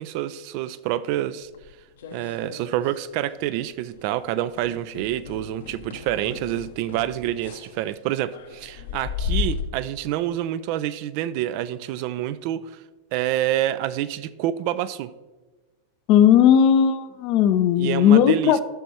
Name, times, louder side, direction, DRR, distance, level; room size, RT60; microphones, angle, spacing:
voice 1, 0.0-1.5 2.1-12.8 13.1-15.1 17.8-18.6, right 12 dB, 45° right, 15 dB, 0.3 m, -27 dB
sound 1, 1.5-3.0 3.2-3.6 3.9-4.1 4.5-9.6, left 6 dB, 60° left, 0.8 m, -34 dB
voice 2, 16.1-18.6, left 9 dB, 40° left, 13 dB, 0.5 m, -16 dB
12.0 x 6.1 x 2.8 m, 1.2 s
figure-of-eight pair, 90°, 0 cm